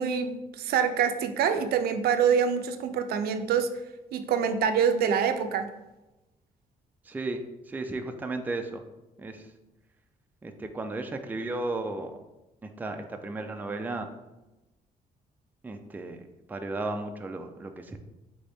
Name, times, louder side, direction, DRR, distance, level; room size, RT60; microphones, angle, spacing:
voice 1, 0.0-3.7 4.1-5.7, right 7 dB, 85° right, 8 dB, 0.4 m, -25 dB
voice 2, 7.1-8.8 9.2-9.5 10.4-12.2 12.6-14.1 15.6-16.2 16.5-18.0, right 2 dB, 10° right, 5 dB, 0.3 m, -34 dB
4.0 x 3.6 x 3.4 m, 1.0 s
cardioid pair, 145°, 16 cm